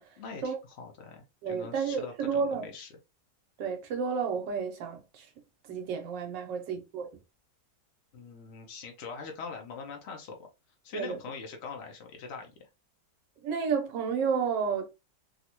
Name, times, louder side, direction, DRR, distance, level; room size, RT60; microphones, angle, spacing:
voice 1, 0.2-2.9 8.1-10.5 10.8-12.7, left 5 dB, 80° left, 0.6 m, -42 dB
voice 2, 1.4-2.7 3.6-5.3 5.7-7.1 10.9-11.2 13.4-14.9, right 6 dB, 80° right, 1.4 m, -31 dB
3.7 x 2.1 x 2.9 m
omnidirectional pair, 1.9 m